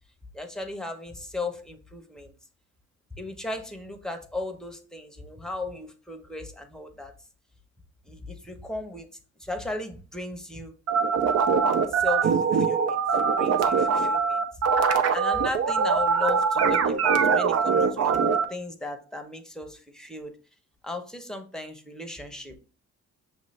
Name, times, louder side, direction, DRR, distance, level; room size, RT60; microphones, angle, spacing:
voice 1, 0.3-2.3 3.1-7.1 8.0-9.1 9.4-10.7 11.9-14.4 14.7-20.3 20.8-22.6, left 2 dB, ahead, 5 dB, 0.8 m, -36 dB
sound 1, 10.9-18.5, right 6 dB, 55° right, 0.6 m, -22 dB
6.2 x 2.6 x 3.2 m, 0.37 s
cardioid pair, 90°, 30 cm